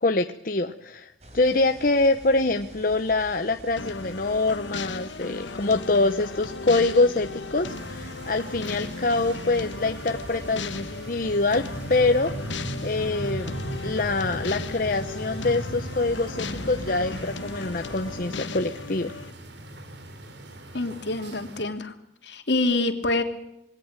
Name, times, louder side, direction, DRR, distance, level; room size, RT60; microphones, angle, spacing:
voice 1, 0.0-12.3 12.8-13.5 13.8-19.1, left 2 dB, 50° left, 7 dB, 0.9 m, -25 dB
sound 1, 1.2-18.4, right 1 dB, 35° right, 4.3 m, -45 dB
sound 2, 3.8-19.3, left 3 dB, 90° left, 1.3 m, -37 dB
sound 3, 7.7-21.6, right 1 dB, 70° right, 3.1 m, -38 dB
voice 2, 20.7-21.9 22.2-23.2, left 2 dB, 70° left, 6 dB, 2.9 m, -26 dB
22.0 x 18.0 x 8.9 m, 0.81 s
head